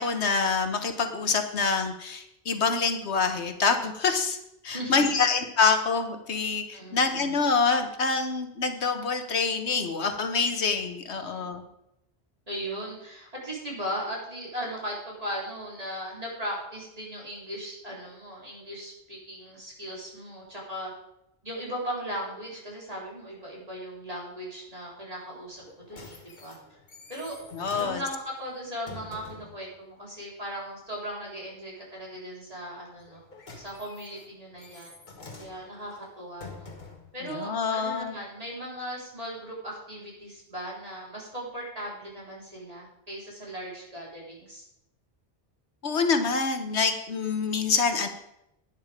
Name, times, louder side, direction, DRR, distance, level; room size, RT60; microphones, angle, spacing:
voice 1, 0.0-4.4 4.6-11.7 27.5-28.0 37.3-38.1 45.8-48.1, left 4 dB, 80° left, 7 dB, 1.4 m, -26 dB
voice 2, 4.7-5.2 6.7-7.0 11.2-11.4 12.5-20.9 21.4-26.6 27.1-27.4 27.7-33.2 33.6-34.9 35.4-36.7 37.1-44.6, equal, 35° right, -4 dB, 3.9 m, -38 dB
sound 1, 25.5-29.6 33.0-37.2 37.9-38.0, left 3 dB, 45° left, 1.5 m, -47 dB
10.5 x 9.6 x 5.1 m, 0.83 s
omnidirectional pair, 1.1 m